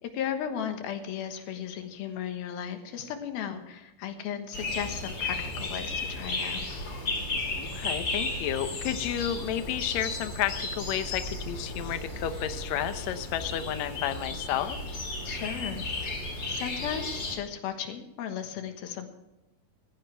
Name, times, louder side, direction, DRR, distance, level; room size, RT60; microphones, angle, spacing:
voice 1, 0.0-6.7 15.2-15.8 16.5-19.1, left 8 dB, 90° left, 6 dB, 3.3 m, -35 dB
sound 1, 4.5-17.4, left 2 dB, 30° left, 3.2 m, -34 dB
voice 2, 7.6-14.8, left 10 dB, 70° left, 10 dB, 1.7 m, -31 dB
15.5 x 15.0 x 3.5 m, 0.99 s
omnidirectional pair, 4.2 m